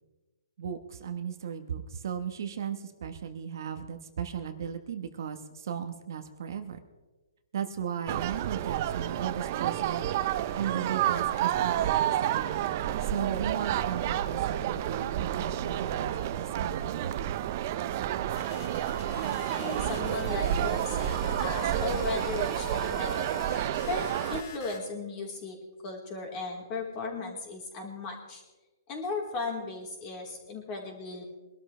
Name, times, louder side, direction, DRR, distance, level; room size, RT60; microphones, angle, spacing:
voice 1, 0.6-6.8 7.5-10.1 10.5-17.1, right 8 dB, 55° right, 7 dB, 1.4 m, -36 dB
sound 1, 8.1-24.4, right 11 dB, 35° right, 0.7 m, -30 dB
sound 2, 18.4-24.8, left 6 dB, 50° left, 2.4 m, -44 dB
voice 2, 19.2-23.3 23.9-25.6 25.8-28.4 28.9-31.2, left 3 dB, 25° left, -1 dB, 4.1 m, -36 dB
24.0 x 12.5 x 3.4 m, 1.2 s
hypercardioid pair, 155°, 2 cm